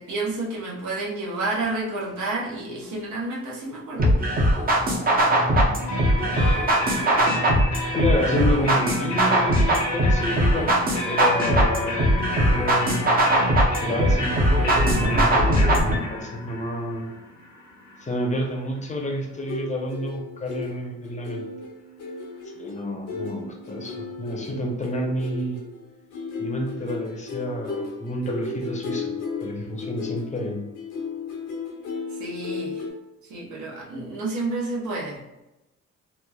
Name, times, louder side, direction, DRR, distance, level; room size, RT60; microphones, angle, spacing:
voice 1, 0.0-4.2 32.1-32.8 33.3-35.2, right 2 dB, 75° right, -3 dB, 0.8 m, -30 dB
sound 1, 4.0-16.0, right 1 dB, 30° right, 0.7 m, -21 dB
voice 2, 5.2-5.9 7.9-10.7 11.0-13.2 13.8-15.6 15.9-17.1 18.0-21.5 22.5-25.6 26.4-29.1 29.4-30.6, left 1 dB, 25° left, 1 dB, 0.7 m, -29 dB
sound 2, 5.9-19.5, left 1 dB, 65° left, 0.8 m, -32 dB
sound 3, 19.3-32.9, left 4 dB, 90° left, 1.0 m, -35 dB
3.1 x 2.1 x 2.2 m, 0.97 s
cardioid pair, 90°, 30 cm